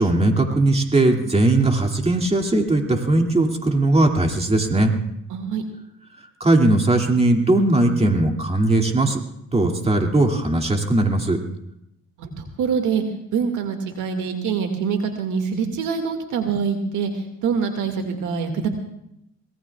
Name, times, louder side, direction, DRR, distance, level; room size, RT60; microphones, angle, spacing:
voice 1, 0.0-4.9 6.4-9.2 9.5-11.4, right 2 dB, 20° right, 2 dB, 2.5 m, -19 dB
voice 2, 5.3-5.6 12.2-13.0 13.3-18.7, right 6 dB, 80° right, 4 dB, 2.1 m, -25 dB
24.5 x 18.5 x 2.4 m, 0.79 s
cardioid pair, 90°, 30 cm